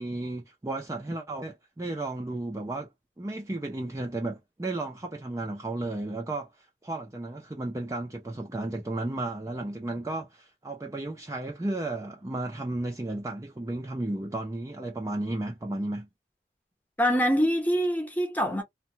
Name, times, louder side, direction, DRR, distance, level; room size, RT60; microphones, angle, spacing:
voice 1, 0.0-2.9 3.2-16.1, right 2 dB, 15° right, 0.4 m, -33 dB
voice 2, 17.0-18.6, equal, 10° left, 0.8 m, -24 dB
2.7 x 2.1 x 2.7 m
head